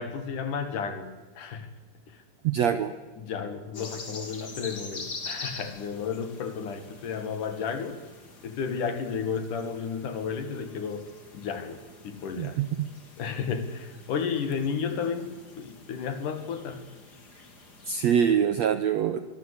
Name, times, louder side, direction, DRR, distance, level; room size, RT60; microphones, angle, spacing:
voice 1, 0.0-1.7 3.2-8.0 8.4-11.1 11.3-12.6 13.2-16.8, left 6 dB, 60° left, 9 dB, 3.3 m, -32 dB
voice 2, 2.4-2.9 12.4-12.9 17.9-19.2, right 8 dB, 70° right, 11 dB, 1.6 m, -24 dB
sound 1, 3.7-18.3, left 3 dB, 30° left, 3.1 m, -45 dB
23.5 x 23.0 x 8.3 m, 1.2 s
omnidirectional pair, 4.3 m